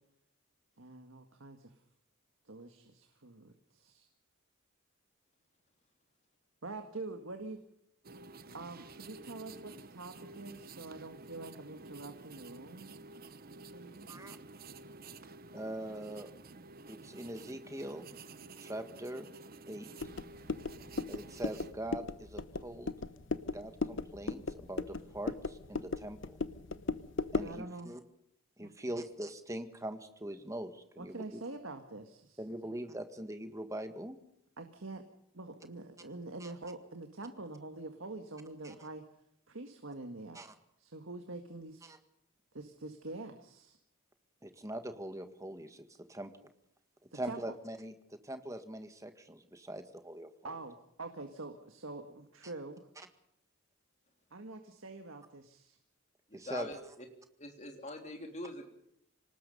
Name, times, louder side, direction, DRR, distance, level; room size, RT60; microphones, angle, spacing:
voice 1, 0.8-1.7 2.5-4.1 6.6-7.6 8.5-13.0 13.7-14.3 20.8-21.0 27.4-27.9 28.6-29.0 31.0-32.4 34.6-35.0 35.3-39.0 39.5-40.4 40.8-41.9 42.5-43.8 47.1-47.4 50.4-52.9 54.3-55.8, right 2 dB, 70° right, 6 dB, 1.8 m, -45 dB
sound 1, 8.0-21.7, right 3 dB, 45° right, 0.9 m, -51 dB
voice 2, 15.5-16.3 16.9-18.1 18.6-19.3 19.7-20.1 21.0-22.9 23.5-26.4 27.3-28.0 28.6-31.4 32.4-34.2 36.4-36.5 38.6-38.7 40.3-40.5 41.8-42.0 44.4-46.3 47.1-50.3 56.3-56.7, right 1 dB, 15° right, 8 dB, 1.8 m, -42 dB
sound 2, 20.0-27.6, left 3 dB, 60° left, 0.9 m, -38 dB
voice 3, 56.3-56.8 57.4-58.6, left 2 dB, 35° left, 3 dB, 3.6 m, -43 dB
26.0 x 19.0 x 5.5 m, 0.76 s
head